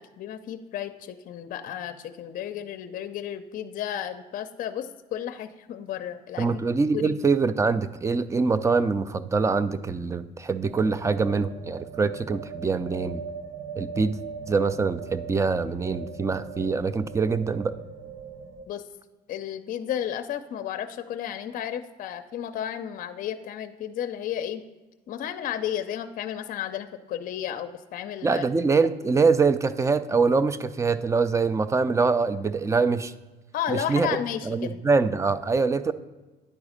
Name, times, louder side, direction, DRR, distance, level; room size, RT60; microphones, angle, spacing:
voice 1, 0.0-6.5 6.9-7.2 18.7-18.8 19.3-24.6 25.1-28.5 33.5-34.8, left 10 dB, 55° left, 10 dB, 0.5 m, -33 dB
voice 2, 6.4-13.2 13.8-14.2 14.5-17.7 28.2-33.1 33.7-34.2 34.5-35.9, right 4 dB, 20° right, 14 dB, 0.4 m, -24 dB
sound 1, 10.6-18.7, right 6 dB, 80° right, 0.8 m, -40 dB
9.9 x 4.0 x 5.0 m, 1.2 s
cardioid pair, 110°, 17 cm